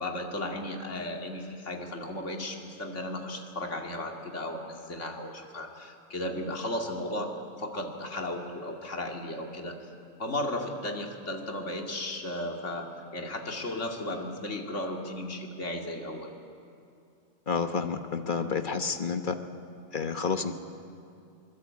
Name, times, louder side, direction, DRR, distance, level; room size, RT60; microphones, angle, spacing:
voice 1, 0.0-9.9 10.2-16.3, left 1 dB, 60° left, 2 dB, 2.6 m, -35 dB
voice 2, 17.5-19.4 19.9-20.5, left 5 dB, 40° left, 7 dB, 1.1 m, -29 dB
23.5 x 21.5 x 8.4 m, 2.4 s
omnidirectional pair, 1.4 m